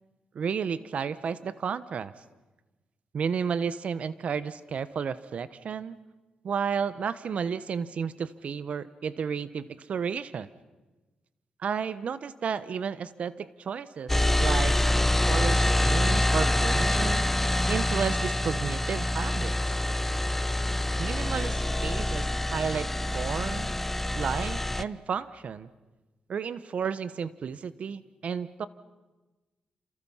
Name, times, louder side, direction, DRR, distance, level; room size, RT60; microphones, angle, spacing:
voice 1, 0.3-2.1 3.1-6.0 6.4-10.5 11.6-14.8 15.2-17.2 17.7-19.5 21.0-22.9 23.1-23.8 24.2-25.7 26.3-28.7, right 6 dB, 65° right, 15 dB, 1.1 m, -32 dB
sound 1, 14.1-24.8, left 1 dB, 10° left, 0.7 m, -26 dB
28.5 x 28.0 x 5.7 m, 1.2 s
cardioid pair, 85°, 2 cm